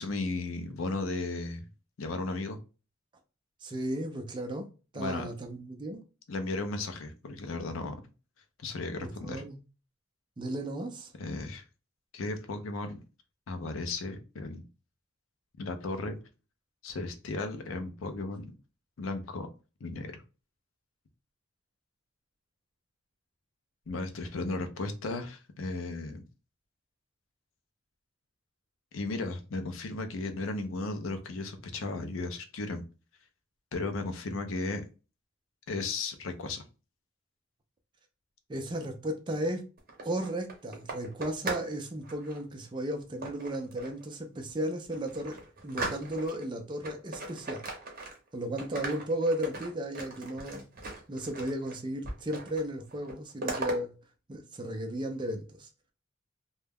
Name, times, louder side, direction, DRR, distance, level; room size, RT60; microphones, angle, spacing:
voice 1, 0.0-1.6 2.0-2.6 4.9-5.3 6.3-8.0 8.6-9.4 11.2-11.6 12.1-13.0 13.5-14.6 15.6-16.2 16.8-18.5 19.0-19.5 19.8-20.1 23.9-26.2 28.9-32.8 33.7-34.8 35.7-36.6, left 3 dB, 80° left, 0.5 m, -35 dB
voice 2, 3.6-4.7 4.9-6.0 9.0-9.6 10.4-11.1 38.5-39.6 40.0-47.6 48.3-50.7 51.1-53.9 54.3-55.7, right 1 dB, 25° right, 0.4 m, -35 dB
sound 1, 39.8-41.7 42.0-42.4 43.2-44.0 44.5-44.6 44.9-46.5 46.8-48.3 48.6-51.8 52.0-52.7 52.9-53.8, right 2 dB, 45° right, 0.7 m, -39 dB
2.2 x 2.1 x 3.3 m
head